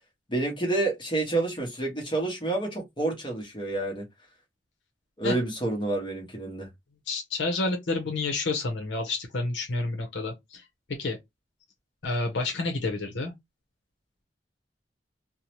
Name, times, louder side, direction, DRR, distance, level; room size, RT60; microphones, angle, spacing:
voice 1, 0.3-4.0 5.2-6.7, right 2 dB, 25° left, 0.9 m, -29 dB
voice 2, 7.1-10.6 11.0-11.2 12.0-13.3, left 3 dB, 80° left, 0.7 m, -29 dB
2.6 x 2.1 x 2.9 m
head